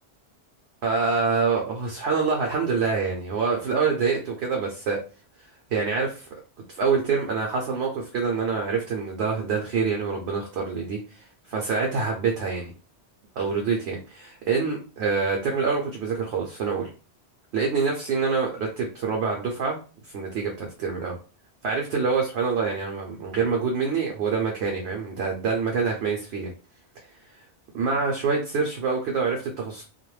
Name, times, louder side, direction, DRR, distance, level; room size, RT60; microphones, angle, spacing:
voice 1, 0.8-5.0 5.7-6.3 6.7-12.7 13.4-16.9 17.5-19.8 20.1-21.2 21.6-26.5 27.7-29.8, right 5 dB, 75° right, 0 dB, 0.8 m, -26 dB
2.3 x 2.1 x 3.1 m, 0.36 s
omnidirectional pair, 1.1 m